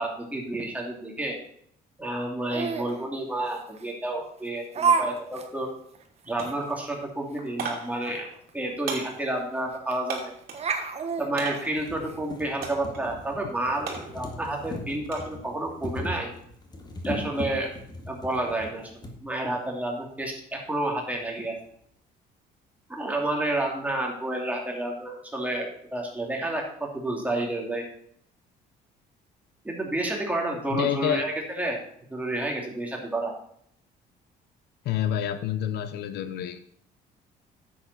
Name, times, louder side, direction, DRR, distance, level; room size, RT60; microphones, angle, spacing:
voice 1, 0.0-1.4 2.0-5.7 6.3-8.3 8.5-10.3 11.2-16.3 17.0-17.7 18.1-18.9 19.2-21.5 23.0-27.8 29.6-31.8 32.1-33.3, right 1 dB, 10° right, -1 dB, 2.6 m, -30 dB
Laughter, 2.5-2.9 3.8-3.9 4.7-5.1 5.3-5.5 5.9-6.0 6.4-6.5 8.5-8.6 8.9-9.0 9.9-10.2 10.5-12.2, right 5 dB, 40° right, 1.2 m, -27 dB
sound 1, 5.1-5.3 5.6-6.1 6.4-10.7 11.4-11.9 12.6-13.0 13.4-15.3 15.7-16.1, right 5 dB, 60° right, 2.6 m, -38 dB
sound 2, 9.6-9.7 10.7-10.8 11.2-11.3 11.6-19.2 20.1-20.2 20.4-20.5, left 2 dB, 25° left, 1.8 m, -39 dB
voice 2, 30.7-31.3 34.8-36.6, left 10 dB, 75° left, 11 dB, 0.8 m, -28 dB
9.8 x 7.8 x 4.1 m, 0.67 s
cardioid pair, 110°, 17 cm